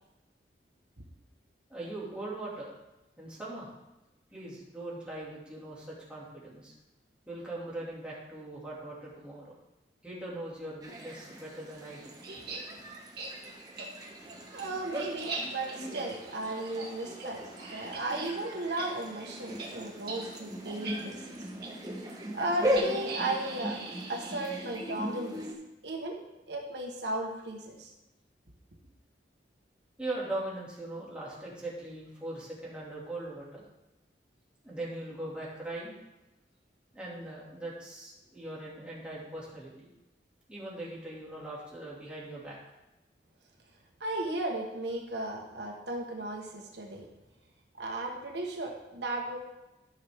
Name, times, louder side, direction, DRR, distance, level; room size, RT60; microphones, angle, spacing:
voice 1, 1.7-2.7 3.2-3.7 4.3-6.7 7.3-9.5 10.0-12.1 14.6-14.7 30.0-33.6 34.6-36.0 36.9-39.9 40.5-42.6, right 1 dB, 5° right, -7 dB, 2.4 m, -40 dB
sound 1, 10.8-25.5, equal, 20° right, 1.3 m, -38 dB
sound 2, 12.2-12.6 13.2-13.3 13.8-13.9 14.3-18.3 18.6-18.9 19.1-19.3 19.6-19.7 20.0-20.2 20.7-20.9 21.6-21.7 22.8-25.1, right 3 dB, 60° right, 1.9 m, -41 dB
voice 2, 14.5-17.4 17.7-21.3 22.4-23.8 24.1-25.4 25.8-26.2 26.5-27.9 44.0-47.0 47.8-49.4, right 2 dB, 75° right, 1 dB, 1.3 m, -35 dB
13.0 x 6.0 x 3.6 m, 0.99 s
head